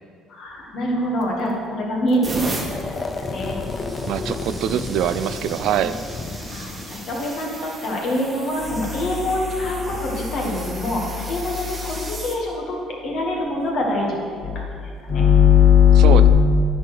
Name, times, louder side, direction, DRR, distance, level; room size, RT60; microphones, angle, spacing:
voice 1, 0.3-2.2 3.1-3.6 5.9-6.0 6.5-12.8 13.0-14.6 15.0-16.3, left 6 dB, 60° left, -2 dB, 2.0 m, -20 dB
sound 1, 1.2-1.6 2.1-12.4 13.2-13.5 15.0-15.2, right 2 dB, 20° right, 1.2 m, -36 dB
sound 2, 2.5-8.5, left 3 dB, 30° left, 0.6 m, -32 dB
voice 2, 4.1-6.0 15.9-16.3, right 10 dB, 70° right, 13 dB, 0.3 m, -23 dB
10.0 x 4.5 x 6.3 m, 2.3 s
cardioid pair, 110°, 0 cm